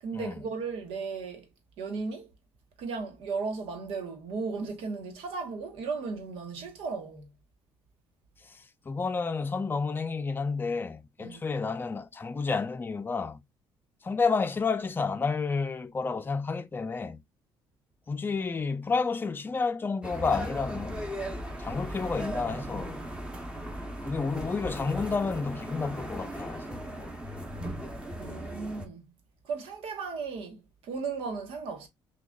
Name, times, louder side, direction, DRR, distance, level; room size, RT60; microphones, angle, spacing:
voice 1, 0.0-1.5 1.8-2.3 2.8-7.3 11.2-11.4 28.2-29.1 29.4-31.9, right 4 dB, 90° right, 1.2 m, -35 dB
voice 2, 8.9-13.4 14.0-17.2 18.1-21.1 21.6-23.1 24.0-26.8, left 4 dB, 20° left, 0.5 m, -30 dB
sound 1, 20.0-28.9, right 1 dB, 10° right, 0.8 m, -37 dB
6.1 x 2.3 x 2.3 m
cardioid pair, 125°, 9 cm